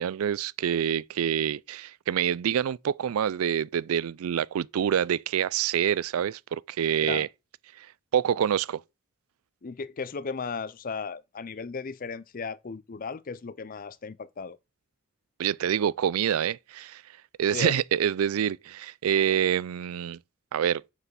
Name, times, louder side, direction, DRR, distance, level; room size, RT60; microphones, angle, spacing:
voice 1, 0.0-7.3 7.8-7.9 8.1-8.8 15.4-17.0 17.4-20.2 20.5-20.8, right 9 dB, 85° right, 0.4 m, -26 dB
voice 2, 9.6-14.6 17.5-17.8, left 5 dB, 40° left, 0.5 m, -35 dB
6.6 x 4.9 x 6.9 m
head